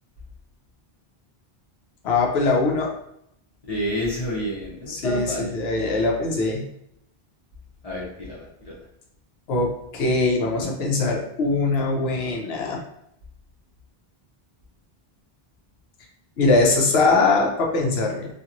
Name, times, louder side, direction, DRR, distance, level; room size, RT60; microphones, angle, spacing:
voice 1, 2.0-2.9 4.9-6.6 9.5-12.8 16.4-18.3, left 3 dB, 85° left, 0 dB, 0.9 m, -22 dB
voice 2, 3.7-5.6 7.8-8.7, equal, 40° left, -5 dB, 0.8 m, -29 dB
2.8 x 2.5 x 2.5 m, 0.75 s
omnidirectional pair, 1.0 m